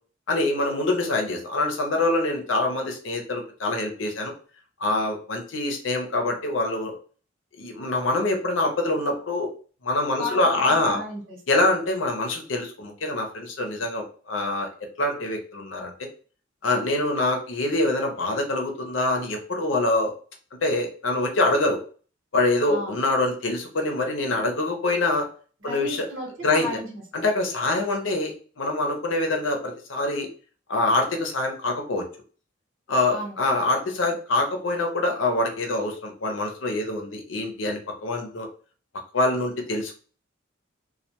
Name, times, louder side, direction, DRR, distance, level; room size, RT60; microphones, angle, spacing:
voice 1, 0.3-4.3 4.8-6.9 7.6-9.5 9.8-11.0 11.5-14.7 15.0-15.9 16.6-20.1 20.6-21.8 22.3-25.3 25.6-26.1 26.4-26.7 27.1-30.3 30.7-32.0 32.9-38.5 39.1-40.0, left 2 dB, 75° left, 2 dB, 0.7 m, -25 dB
voice 2, 10.2-11.4 22.7-23.0 25.6-27.0 33.1-33.3, left 1 dB, 85° right, -1 dB, 1.1 m, -34 dB
2.3 x 2.2 x 2.8 m, 0.40 s
head